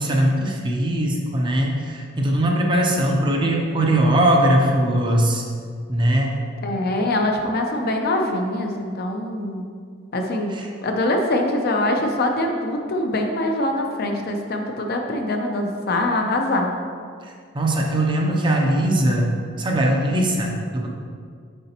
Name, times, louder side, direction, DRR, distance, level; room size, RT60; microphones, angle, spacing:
voice 1, 0.0-5.4 5.9-6.3 10.5-10.7 17.5-20.9, right 1 dB, 25° right, 0 dB, 0.6 m, -20 dB
voice 2, 6.6-9.6 10.1-10.6 10.8-16.7, left 1 dB, 50° left, 3 dB, 0.6 m, -23 dB
6.8 x 4.9 x 2.9 m, 2.1 s
head